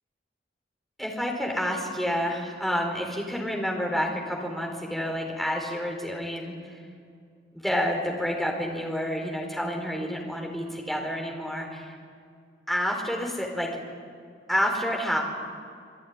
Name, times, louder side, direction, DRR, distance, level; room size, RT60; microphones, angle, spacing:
voice 1, 1.0-6.8 7.5-12.0 12.7-13.7 14.5-15.2, equal, ahead, 0 dB, 4.5 m, -29 dB
28.5 x 19.0 x 9.8 m, 2.3 s
head